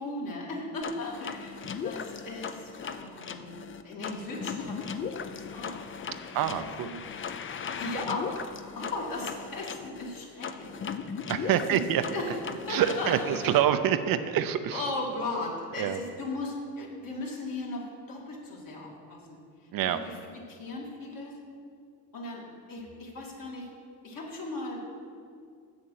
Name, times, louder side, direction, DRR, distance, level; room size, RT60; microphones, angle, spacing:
voice 1, 0.0-3.6 3.8-7.0 7.8-10.8 11.4-12.4 12.7-13.2 14.7-19.4 19.8-21.3 22.1-22.4 22.7-23.7 24.0-24.9, left 2 dB, 60° left, -3 dB, 2.5 m, -37 dB
sound 1, 0.8-13.6, left 6 dB, 30° left, 0.5 m, -38 dB
voice 2, 6.3-6.9 11.3-12.0 12.7-14.8 15.8-16.0 19.7-20.0, right 10 dB, 60° right, 10 dB, 0.6 m, -26 dB
7.4 x 7.0 x 6.5 m, 2.3 s
cardioid pair, 85°, 39 cm